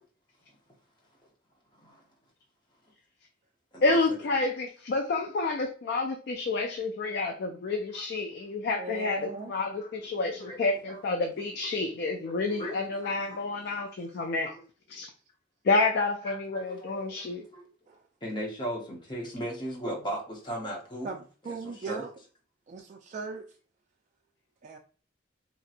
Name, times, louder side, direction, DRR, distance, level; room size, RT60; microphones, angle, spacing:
voice 1, 1.7-2.0 3.7-4.0 7.9-8.0 9.8-9.9 10.4-10.6 10.9-11.0 12.2-13.4 13.6-13.9 14.3-14.6 16.3-17.7 18.2-21.1 21.4-22.1, equal, 25° left, 0.9 m, -38 dB
voice 2, 3.8-14.5 14.9-15.1 15.6-17.4, left 3 dB, 55° left, 0.3 m, -29 dB
voice 3, 8.8-9.5 17.9-18.0 21.0-22.1 22.7-23.4 24.6-24.8, right 3 dB, 40° right, 0.3 m, -38 dB
3.0 x 2.7 x 2.5 m
head